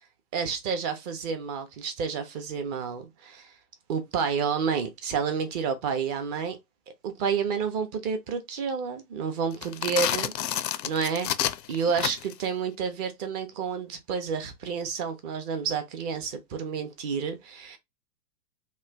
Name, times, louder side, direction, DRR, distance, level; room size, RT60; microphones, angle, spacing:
voice 1, 0.3-3.5 3.9-6.6 7.0-10.3 10.8-11.3 11.7-17.8, right 6 dB, 25° right, 0.5 m, -30 dB
sound 1, 9.5-12.4, left 11 dB, 85° left, 0.6 m, -29 dB
3.1 x 2.3 x 3.3 m
hypercardioid pair, 130°, 48 cm